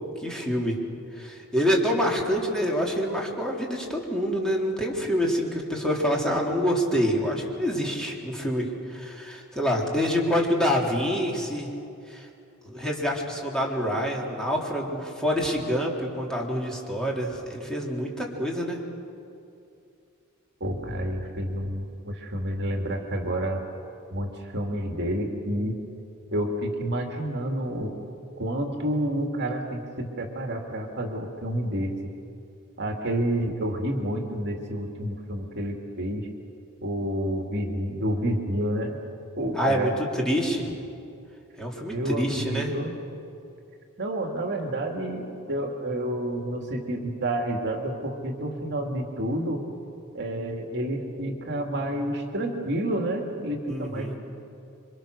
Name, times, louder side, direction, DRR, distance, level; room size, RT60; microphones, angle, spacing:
voice 1, 0.2-0.8 1.2-11.7 12.1-12.3 12.6-18.8 39.6-40.8 41.6-42.7 53.7-54.2, equal, 5° left, -2 dB, 3.4 m, -26 dB
voice 2, 20.6-23.6 24.1-25.7 26.3-28.0 28.4-31.9 32.8-36.3 36.8-39.0 39.4-40.0 41.9-43.0 44.0-49.6 50.1-54.2, right 1 dB, 55° right, 2 dB, 2.4 m, -29 dB
28.0 x 24.5 x 6.6 m, 2.6 s
head